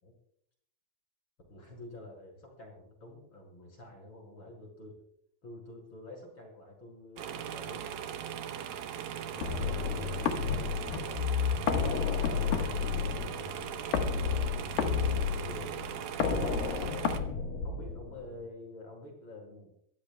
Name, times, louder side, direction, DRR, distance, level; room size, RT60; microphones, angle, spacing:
voice 1, 1.5-4.9 5.4-7.9 9.2-13.5 14.7-16.8 17.6-19.7, left 1 dB, 35° left, 1 dB, 6.2 m, -49 dB
sound 1, 7.2-17.2, right 9 dB, 85° right, 2.9 m, -39 dB
sound 2, 9.4-18.4, left 6 dB, 80° left, 3.1 m, -31 dB
24.5 x 16.5 x 2.3 m, 0.70 s
omnidirectional pair, 4.0 m